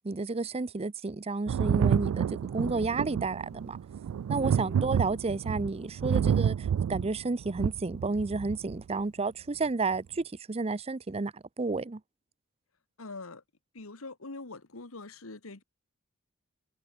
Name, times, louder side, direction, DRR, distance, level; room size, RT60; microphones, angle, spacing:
voice 1, 0.0-3.8 4.3-6.5 6.9-12.0, right 3 dB, 30° right, 0.6 m, -31 dB
Thunder, 1.5-8.8 9.9-10.0, right 8 dB, 90° right, 0.3 m, -29 dB
voice 2, 13.0-13.4 13.7-15.6, left 3 dB, 80° left, 1.8 m, -44 dB
head